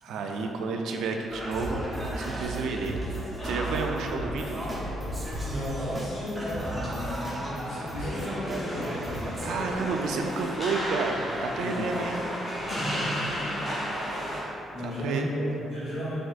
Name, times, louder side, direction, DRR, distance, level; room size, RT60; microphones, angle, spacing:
voice 1, 0.0-3.0 3.4-4.7 9.4-12.2 12.5-12.6 14.8-15.3, right 4 dB, 75° right, 3 dB, 0.3 m, -31 dB
Singing, 1.3-10.4, right 1 dB, 10° right, 0.6 m, -34 dB
sound 1, 3.4-14.4, equal, 25° left, 1.2 m, -35 dB
voice 2, 5.4-9.3 11.6-11.9 12.7-14.1 14.7-16.1, equal, 50° left, -12 dB, 1.3 m, -34 dB
4.5 x 3.5 x 2.4 m, 2.9 s
cardioid pair, 165°, 0 cm